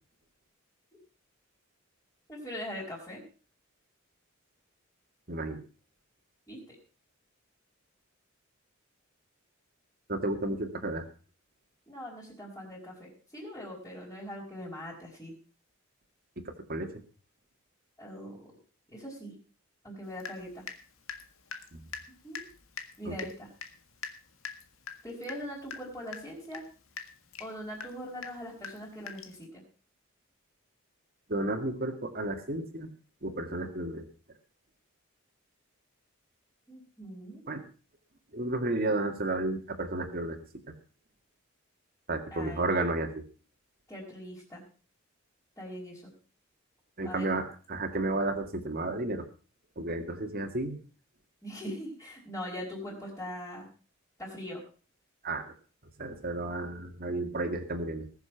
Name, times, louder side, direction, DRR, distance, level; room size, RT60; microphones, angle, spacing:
voice 1, 2.3-3.2 6.5-6.8 11.9-15.3 18.0-18.5 18.9-19.3 19.8-20.6 22.2-22.4 23.0-23.5 25.0-26.6 27.4-29.6 36.7-37.4 42.3-42.6 43.9-44.6 45.6-46.1 47.0-47.3 51.4-53.7 54.2-54.6, equal, 15° left, -7 dB, 5.1 m, -41 dB
voice 2, 5.3-5.6 10.1-11.1 16.5-16.9 21.7-21.8 23.1-23.2 31.3-32.9 33.2-34.1 37.5-37.6 38.3-40.4 42.1-43.2 47.0-47.4 47.7-49.2 49.8-50.8 55.2-55.5 56.0-58.1, right 2 dB, 45° right, 4 dB, 2.1 m, -32 dB
Water tap faucet / Drip, 20.2-20.8 21.1-29.4, left 6 dB, 80° left, 1.7 m, -43 dB
20.0 x 7.3 x 5.7 m, 0.37 s
head